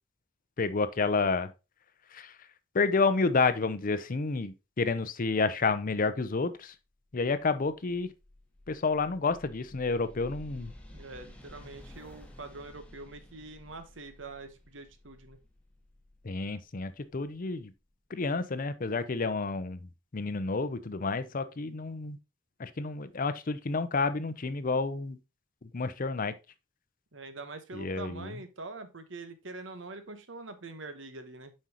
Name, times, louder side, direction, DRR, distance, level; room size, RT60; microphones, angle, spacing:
voice 1, 0.6-1.5 2.1-2.3 2.7-6.7 7.1-8.1 8.7-10.7 16.2-17.7 18.1-19.8 20.1-22.2 22.6-25.2 25.6-26.4 27.7-28.3, left 4 dB, 45° left, 0.6 m, -30 dB
sound 1, 7.1-17.9, left 1 dB, 5° left, 1.2 m, -52 dB
voice 2, 10.9-15.4 27.1-31.5, right 3 dB, 70° right, 1.1 m, -44 dB
7.5 x 5.4 x 2.9 m
head